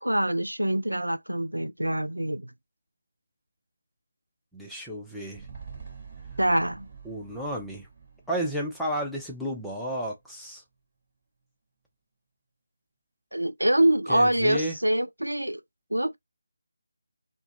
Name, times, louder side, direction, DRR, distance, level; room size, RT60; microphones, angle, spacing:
voice 1, 0.0-2.5 6.4-6.9 13.3-15.6 15.9-16.2, right 1 dB, 85° right, 0.3 m, -25 dB
voice 2, 4.5-5.4 7.0-7.9 8.3-10.6 14.1-14.8, equal, ahead, 0.5 m, -32 dB
sound 1, 5.3-9.8 10.2-10.3, right 6 dB, 30° right, 1.1 m, -47 dB
2.3 x 2.1 x 2.8 m
figure-of-eight pair, 160°, 0 cm